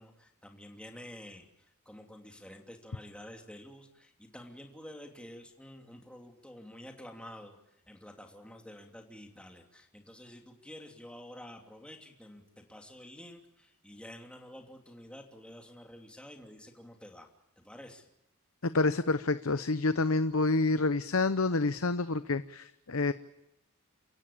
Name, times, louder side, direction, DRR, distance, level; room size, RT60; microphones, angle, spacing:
voice 1, 0.0-17.3 17.6-18.1, left 1 dB, 5° left, 3 dB, 2.8 m, -49 dB
voice 2, 18.7-23.1, left 3 dB, 65° left, 12 dB, 0.9 m, -28 dB
29.5 x 16.5 x 8.6 m, 0.86 s
head